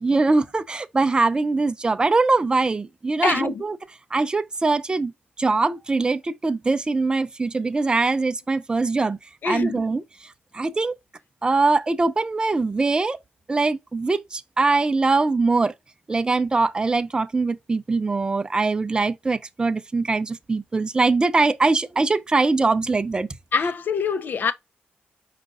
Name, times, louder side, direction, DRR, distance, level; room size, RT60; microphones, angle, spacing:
voice 1, 0.0-3.8 4.1-5.1 5.4-9.2 9.4-10.3 10.5-11.0 11.4-13.2 13.5-15.7 16.1-23.3, right 3 dB, 25° right, 0.5 m, -22 dB
voice 2, 3.2-3.6 9.4-9.8 23.5-24.5, left 5 dB, 55° left, 0.6 m, -24 dB
5.1 x 2.4 x 3.7 m
cardioid pair, 80°, 4 cm